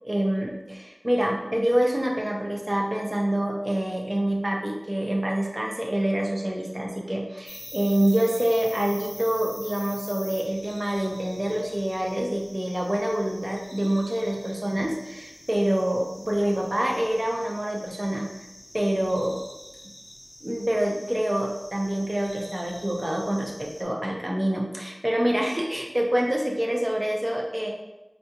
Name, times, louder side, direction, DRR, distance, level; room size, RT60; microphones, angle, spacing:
voice 1, 0.0-18.4 18.7-19.4 20.4-27.7, right 1 dB, 40° right, 0 dB, 0.6 m, -26 dB
sound 1, 7.5-23.8, left 1 dB, 55° left, 0.7 m, -45 dB
4.0 x 2.3 x 2.9 m, 1.0 s
wide cardioid pair, 40°, 0 cm